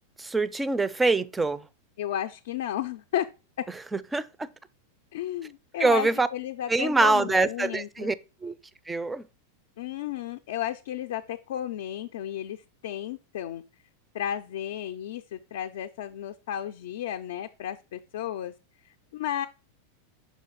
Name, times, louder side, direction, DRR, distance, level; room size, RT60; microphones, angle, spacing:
voice 1, 0.2-1.6 3.9-4.3 5.8-6.3 6.7-8.1 8.4-8.6 8.9-9.2, right 3 dB, 10° right, 0.3 m, -24 dB
voice 2, 2.0-3.3 3.6-3.7 5.1-8.2 9.8-13.6 14.1-18.5 18.8-19.5, left 11 dB, 75° left, 0.4 m, -33 dB
5.6 x 4.1 x 4.5 m
supercardioid pair, 135°, 0 cm